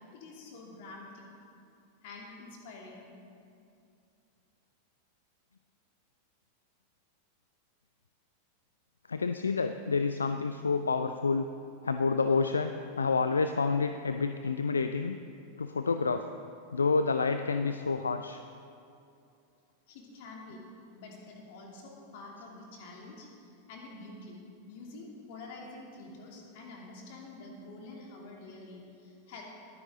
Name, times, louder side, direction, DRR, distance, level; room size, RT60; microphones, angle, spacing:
voice 1, 0.1-1.2 2.0-3.1 19.9-20.6 20.9-24.4 24.7-29.4, left 2 dB, 50° left, -1 dB, 2.7 m, -47 dB
voice 2, 9.1-11.5 11.8-15.2 15.6-16.3 16.7-18.4, left 4 dB, 75° left, 9 dB, 0.4 m, -29 dB
21.0 x 9.9 x 3.9 m, 2.6 s
figure-of-eight pair, 90°, 0 cm